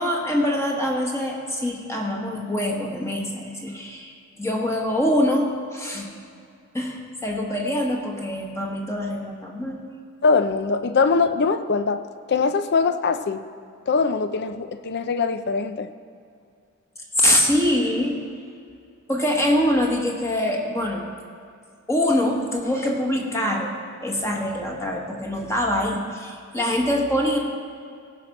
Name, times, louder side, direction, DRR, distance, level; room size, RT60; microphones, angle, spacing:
voice 1, 0.0-6.1 6.7-9.8 17.2-18.2 19.1-21.1 21.9-23.7 24.0-27.4, left 1 dB, 15° left, -1 dB, 1.3 m, -24 dB
voice 2, 10.2-12.0 12.3-13.4 13.9-15.9, left 4 dB, 55° left, 10 dB, 0.6 m, -22 dB
17.5 x 5.9 x 5.4 m, 2.4 s
head